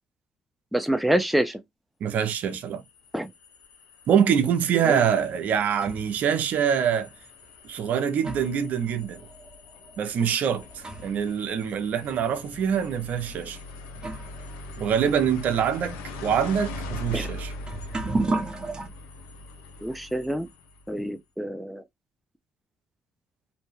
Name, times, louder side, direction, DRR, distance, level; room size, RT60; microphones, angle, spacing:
voice 1, 0.7-1.6 3.1-3.3 4.8-5.0 17.1-17.3 19.8-20.5 20.9-21.8, right 1 dB, ahead, 0.3 m, -26 dB
voice 2, 2.0-2.8 4.1-7.1 7.6-9.2 10.0-13.6 14.8-17.5, right 8 dB, 60° right, 0.6 m, -25 dB
sound 1, 2.5-21.0, left 2 dB, 90° left, 0.7 m, -42 dB
sound 2, 5.8-6.2 7.1-7.2 7.9-11.3 11.6-11.7 12.5-12.7 13.5-13.6 13.9-18.9, right 2 dB, 25° right, 0.8 m, -34 dB
2.7 x 2.1 x 3.0 m
cardioid pair, 95°, 3 cm